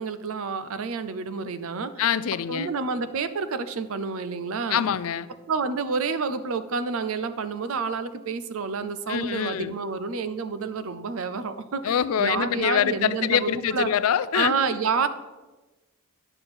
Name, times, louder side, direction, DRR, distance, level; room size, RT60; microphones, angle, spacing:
voice 1, 0.0-1.9 2.5-4.8 5.5-13.9 14.3-15.1, right 4 dB, 65° right, 12 dB, 0.5 m, -29 dB
voice 2, 2.0-2.7 4.7-5.3 9.1-9.7 11.8-14.6, left 9 dB, 70° left, 16 dB, 0.4 m, -24 dB
9.8 x 6.7 x 4.3 m, 1.2 s
head